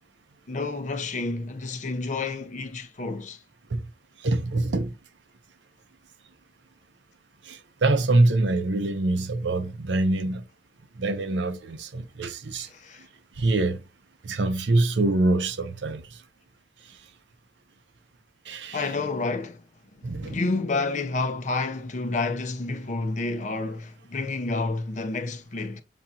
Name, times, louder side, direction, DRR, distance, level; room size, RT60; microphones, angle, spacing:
voice 1, 0.5-3.4 12.7-13.0 18.7-19.6 20.0-25.8, left 3 dB, 40° left, 0.6 m, -29 dB
voice 2, 4.2-4.9 7.5-10.4 11.0-12.7 13.4-13.8 14.2-16.2 18.5-18.9 20.0-20.4, right 2 dB, 85° right, 0.6 m, -24 dB
7.0 x 2.8 x 2.5 m
head